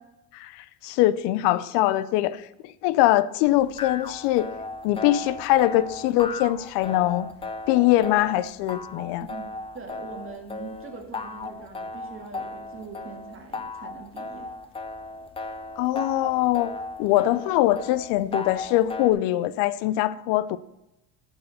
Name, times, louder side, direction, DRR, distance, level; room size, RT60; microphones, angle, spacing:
voice 1, 0.3-4.5 4.8-7.3 7.7-9.3 15.8-16.7 17.0-20.6, left 15 dB, 80° left, 0.6 m, -23 dB
sound 1, 3.5-19.1, left 2 dB, 15° left, 0.6 m, -36 dB
voice 2, 9.7-14.5, right 4 dB, 30° right, 1.8 m, -42 dB
11.5 x 4.7 x 6.4 m
cardioid pair, 135°, 41 cm